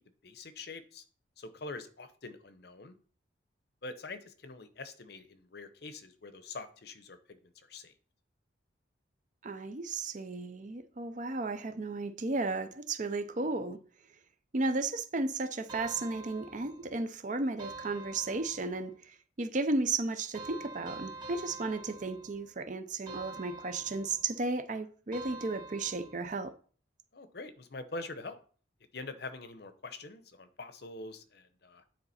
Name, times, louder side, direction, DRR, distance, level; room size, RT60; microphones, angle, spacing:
voice 1, 0.2-1.0 1.4-3.0 3.8-7.9 27.1-28.4 28.9-31.8, left 3 dB, 55° left, 0.7 m, -44 dB
voice 2, 9.4-13.8 14.5-26.5, right 3 dB, 40° right, 0.5 m, -34 dB
sound 1, 15.7-17.0 17.6-18.9 20.3-22.5 23.1-24.4 25.1-26.4, right 3 dB, 25° right, 1.9 m, -46 dB
9.5 x 3.9 x 4.2 m
head